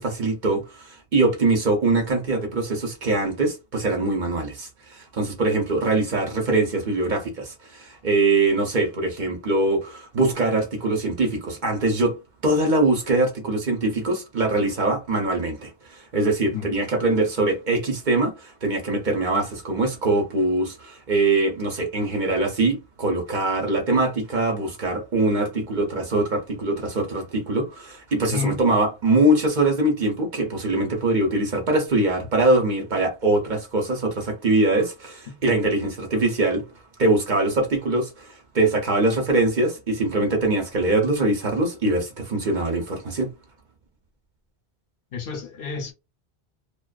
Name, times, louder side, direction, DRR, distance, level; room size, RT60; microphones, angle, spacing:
voice 1, 0.0-12.2 12.4-36.6 37.0-43.3, right 2 dB, 50° right, 0.8 m, -23 dB
voice 2, 45.1-45.9, left 5 dB, 65° left, 0.8 m, -30 dB
2.4 x 2.2 x 2.3 m
omnidirectional pair, 1.0 m